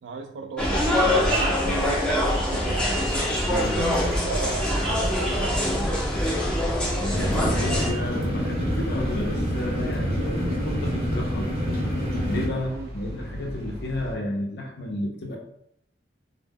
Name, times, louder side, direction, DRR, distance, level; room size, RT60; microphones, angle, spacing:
voice 1, 0.0-1.8 2.2-3.1 3.6-5.7 12.7-12.9, right 3 dB, 80° right, 5 dB, 0.4 m, -35 dB
sound 1, 0.6-7.9, equal, 5° left, 0.5 m, -24 dB
sound 2, 2.9-14.1, equal, 60° right, 0.9 m, -38 dB
voice 2, 3.5-3.8 7.0-11.5 12.2-15.4, left 1 dB, 65° left, 0 dB, 0.5 m, -32 dB
sound 3, 7.1-12.5, equal, 40° right, 0.6 m, -27 dB
2.0 x 2.0 x 3.3 m, 0.71 s
head